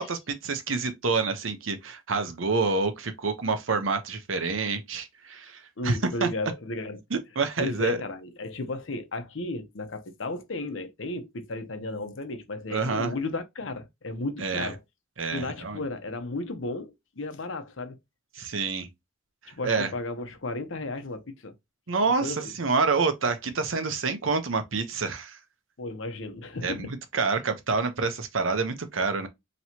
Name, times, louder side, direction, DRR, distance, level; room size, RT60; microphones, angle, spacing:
voice 1, 0.0-6.3 7.1-8.0 12.7-13.1 14.4-14.7 15.2-15.8 18.4-18.9 19.6-19.9 21.9-25.4 26.6-26.9 27.1-29.3, right 4 dB, 85° right, 0.8 m, -27 dB
voice 2, 5.8-7.0 7.6-14.8 15.3-18.0 19.5-21.5 22.2-22.5 25.8-26.9 27.2-27.3, left 2 dB, 75° left, 0.8 m, -34 dB
4.4 x 3.1 x 2.8 m
head